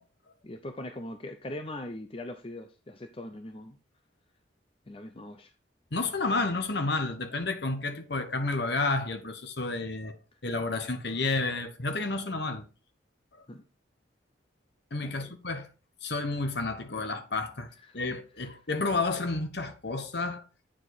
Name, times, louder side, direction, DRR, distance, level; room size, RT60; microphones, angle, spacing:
voice 1, 0.4-3.8 4.9-5.5 13.5-13.6 15.0-15.3 17.8-18.0 18.4-18.5, left 1 dB, 30° left, 0.6 m, -41 dB
voice 2, 5.9-10.2 10.4-12.6 14.9-15.7 16.0-17.7 17.9-20.4, left 3 dB, 55° left, 1.2 m, -30 dB
8.9 x 4.8 x 4.0 m
head